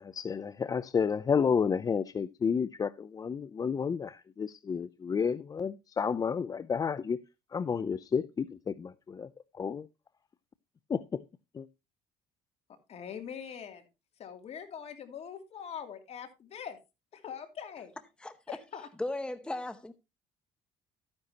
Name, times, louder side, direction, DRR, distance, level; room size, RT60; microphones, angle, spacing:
voice 1, 0.0-7.2 7.5-9.3 9.6-9.9 10.9-11.2 11.6-11.7, left 6 dB, 25° left, 0.5 m, -31 dB
voice 2, 12.9-13.8 14.2-16.8 17.1-17.9 18.5-18.9, left 8 dB, 50° left, 2.7 m, -42 dB
voice 3, 18.2-18.6 19.0-19.9, left 2 dB, 5° left, 0.8 m, -36 dB
13.5 x 9.7 x 2.8 m
cardioid pair, 110°, 14 cm